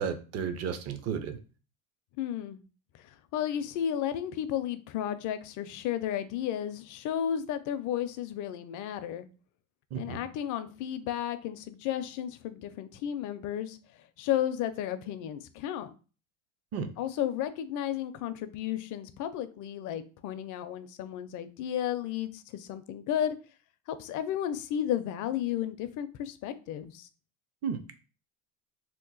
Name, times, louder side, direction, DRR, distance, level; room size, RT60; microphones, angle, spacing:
voice 1, 0.0-1.4 9.9-10.2 16.7-16.9 27.6-27.8, right 7 dB, 40° right, 0.5 m, -33 dB
voice 2, 2.2-2.6 3.3-9.3 9.9-13.8 14.2-15.9 17.0-23.4 23.9-27.1, left 10 dB, 50° left, 0.5 m, -33 dB
2.9 x 2.1 x 3.9 m
supercardioid pair, 110°, 41 cm